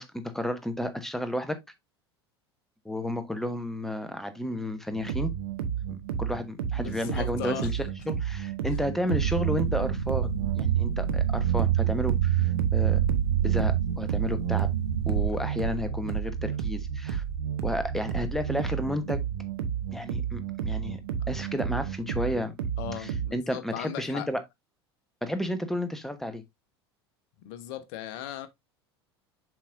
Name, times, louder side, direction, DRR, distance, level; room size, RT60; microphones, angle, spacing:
voice 1, 0.0-1.6 2.8-5.3 5.9-13.0 13.4-14.7 15.1-17.2 17.6-19.2 19.9-21.0 21.3-22.5 22.9-24.4 25.2-26.4, left 1 dB, ahead, 1.2 m, -32 dB
sound 1, 4.9-23.3, right 8 dB, 60° right, 1.1 m, -32 dB
voice 2, 6.7-7.7 8.7-8.8 22.8-24.3 27.4-28.5, left 12 dB, 50° left, 1.1 m, -37 dB
sound 2, 9.1-15.3, right 10 dB, 80° right, 0.6 m, -26 dB
7.3 x 5.6 x 2.6 m
figure-of-eight pair, 75°, 14 cm